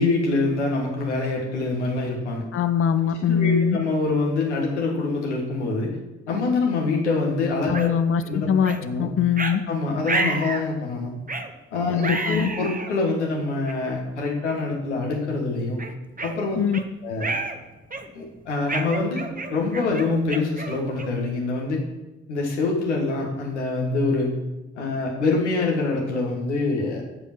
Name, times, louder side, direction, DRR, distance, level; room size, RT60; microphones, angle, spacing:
voice 1, 0.0-2.4 3.3-6.0 6.3-7.9 8.2-8.5 8.8-9.1 9.7-11.1 11.7-15.8 16.2-16.6 17.0-17.3 18.1-21.8 22.3-24.3 24.7-27.0, left 3 dB, 85° left, 0 dB, 1.7 m, -25 dB
voice 2, 2.5-3.8 7.7-9.6 11.9-12.5 16.6-16.8, left 8 dB, 40° left, 10 dB, 0.7 m, -22 dB
sound 1, 7.7-7.9 8.6-8.8 9.4-9.6 10.1-10.7 11.3-11.5 12.0-12.9 13.6-13.7 14.5-14.7 15.1-15.2 15.8-16.8 17.2-17.6 17.9-18.2 18.7-21.3, right 3 dB, 25° right, 1.3 m, -30 dB
15.0 x 5.5 x 6.1 m, 1.1 s
figure-of-eight pair, 40°, 34 cm